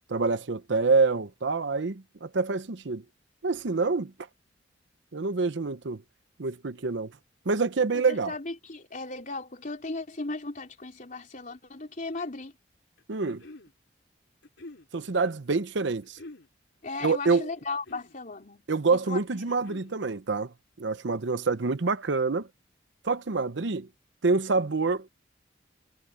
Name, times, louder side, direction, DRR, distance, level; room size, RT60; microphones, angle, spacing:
voice 1, 0.1-3.0 3.4-4.1 5.1-6.0 6.4-7.1 7.5-8.3 13.1-13.4 14.9-16.2 17.0-17.5 18.7-22.5 23.0-23.9 24.2-25.1, right 4 dB, 75° right, 0.8 m, -26 dB
voice 2, 7.9-12.5 16.8-18.6 18.9-19.2 19.5-19.6, left 3 dB, 45° left, 3.7 m, -36 dB
sound 1, 13.0-13.7 14.4-14.9 16.0-16.5 17.5-18.2 19.3-20.0, left 2 dB, 80° left, 3.4 m, -47 dB
head